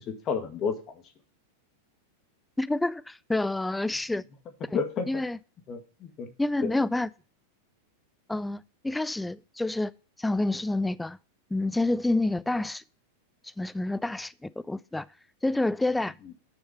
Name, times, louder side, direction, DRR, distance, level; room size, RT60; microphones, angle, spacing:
voice 1, 0.1-1.0 4.1-4.2 4.7-5.1 5.7-6.3 6.6-6.7 16.2-16.3, left 6 dB, 30° left, 1.9 m, -31 dB
voice 2, 2.6-4.2 4.7-4.8 5.1-5.4 6.4-7.1 8.3-9.9 10.2-11.2 11.5-12.8 13.4-15.1 15.4-16.1, left 2 dB, 5° left, 0.3 m, -28 dB
9.0 x 6.5 x 5.4 m
figure-of-eight pair, 90°, 0 cm